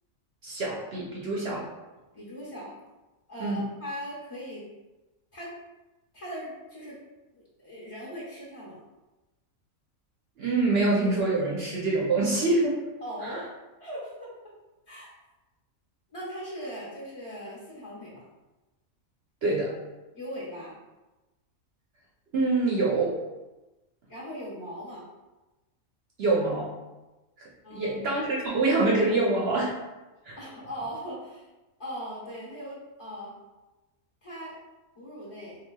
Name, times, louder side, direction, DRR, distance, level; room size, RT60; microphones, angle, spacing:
voice 1, 0.4-1.6 3.4-3.6 10.4-12.8 13.2-13.4 19.4-19.7 22.3-23.2 26.2-26.7 27.7-29.7 30.2-30.4, right 2 dB, 60° right, -4 dB, 0.7 m, -25 dB
voice 2, 2.1-2.7 3.3-4.7 5.3-5.5 6.1-7.0 7.3-8.8 13.0-13.5 13.8-14.3 14.9-15.1 16.1-18.2 20.1-20.8 24.1-25.0 27.6-28.2 30.4-31.5 31.8-33.4 34.2-34.6 34.9-35.6, equal, 25° left, -8 dB, 0.9 m, -39 dB
4.1 x 2.9 x 2.2 m, 1.1 s
omnidirectional pair, 1.4 m